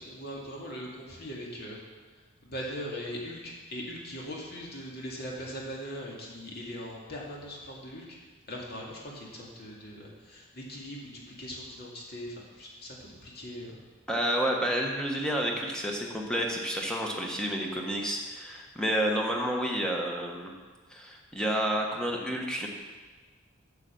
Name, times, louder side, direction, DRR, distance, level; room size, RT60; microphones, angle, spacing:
voice 1, 0.0-1.8 2.4-8.2 8.5-13.8, equal, 50° left, -3 dB, 2.3 m, -40 dB
voice 2, 14.1-20.5 20.9-22.7, equal, 5° left, 0 dB, 1.2 m, -30 dB
8.2 x 7.4 x 6.9 m, 1.4 s
head